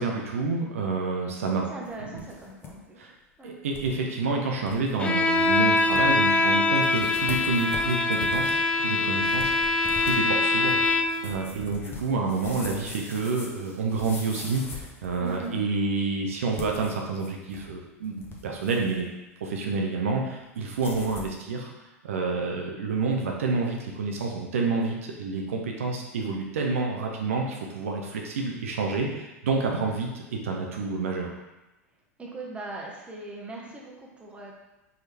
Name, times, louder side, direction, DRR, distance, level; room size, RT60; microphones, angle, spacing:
voice 1, 0.0-1.6 2.1-2.2 3.0-3.1 3.4-9.5 10.0-19.1 19.4-21.7 22.0-31.3, right 4 dB, 70° right, 0 dB, 0.6 m, -29 dB
voice 2, 1.7-3.0 3.4-3.5 15.2-15.6 32.2-34.6, right 2 dB, 15° right, -2 dB, 1.0 m, -39 dB
sound 1, 1.9-2.7 3.0-3.1 3.7-3.9 4.3-4.4 4.6-4.9 5.4-5.5 5.8-6.3 6.7-15.6 16.4-17.7 18.0-19.0 20.7-21.4, left 5 dB, 30° left, 0.8 m, -42 dB
Bowed string instrument, 5.0-11.3, left 2 dB, 15° left, 0.4 m, -23 dB
4.6 x 3.0 x 3.4 m, 1.0 s
figure-of-eight pair, 85°, 8 cm